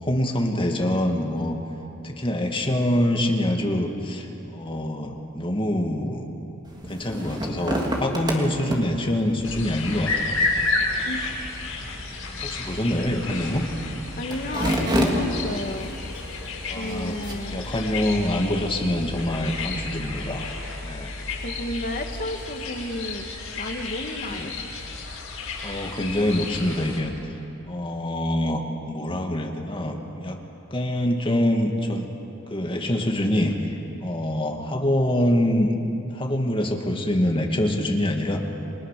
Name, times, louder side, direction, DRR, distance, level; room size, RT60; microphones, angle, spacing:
voice 1, 0.0-1.6 2.0-6.3 6.9-10.4 11.7-11.9 12.4-13.7 16.6-17.2 17.5-20.5 20.8-21.1 24.3-24.5 25.6-27.1 27.7-30.4 30.7-32.1 32.5-35.7 36.1-38.4, left 1 dB, 25° left, 2 dB, 2.3 m, -25 dB
sound 1, 6.7-17.8, equal, 20° right, 3.0 m, -31 dB
sound 2, 9.4-27.0, left 3 dB, 80° left, 6.7 m, -31 dB
voice 2, 14.2-15.9 16.7-17.6 21.4-23.3 23.6-24.5, left 1 dB, 45° left, 4 dB, 1.8 m, -32 dB
30.0 x 23.0 x 6.8 m, 2.8 s
head